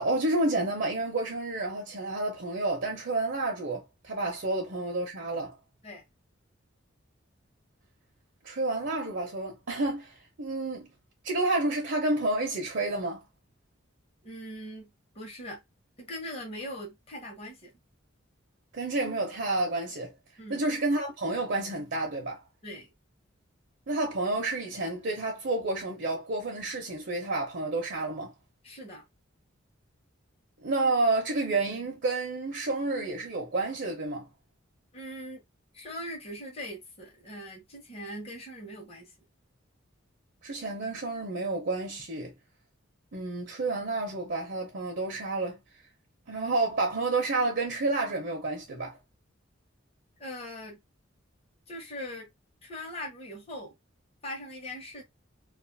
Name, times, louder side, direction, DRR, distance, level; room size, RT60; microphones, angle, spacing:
voice 1, 0.0-5.6 8.4-10.9 11.2-13.2 18.7-20.1 20.5-22.4 23.9-28.3 30.6-34.3 40.4-42.3 43.1-45.6 46.3-49.0, right 2 dB, 55° right, 0.6 m, -30 dB
voice 2, 14.2-14.9 15.1-15.6 16.0-17.8 20.4-20.7 22.6-22.9 28.6-29.0 34.9-35.4 35.7-39.1 50.2-50.8 51.7-52.3 52.6-53.7 54.2-55.0, equal, 30° left, 0.9 m, -41 dB
2.5 x 2.4 x 2.6 m
head